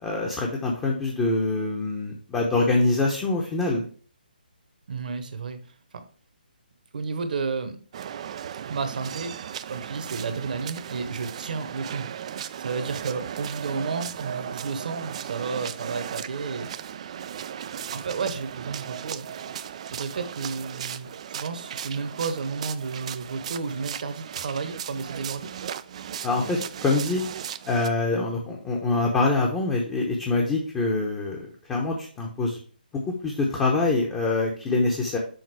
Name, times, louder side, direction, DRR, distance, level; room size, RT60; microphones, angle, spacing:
voice 1, 0.0-3.8 26.2-27.2 27.7-32.6 33.1-35.2, left 3 dB, 15° left, -1 dB, 0.9 m, -25 dB
voice 2, 4.9-5.6 5.9-6.0 6.9-7.8 8.6-9.3 9.7-12.1 12.6-16.7 17.9-19.3 19.8-25.5, right 4 dB, 55° right, 9 dB, 1.1 m, -32 dB
sound 1, 7.9-27.9, right 9 dB, 40° right, 0.4 m, -36 dB
6.5 x 4.0 x 4.7 m, 0.43 s
figure-of-eight pair, 150°, 5 cm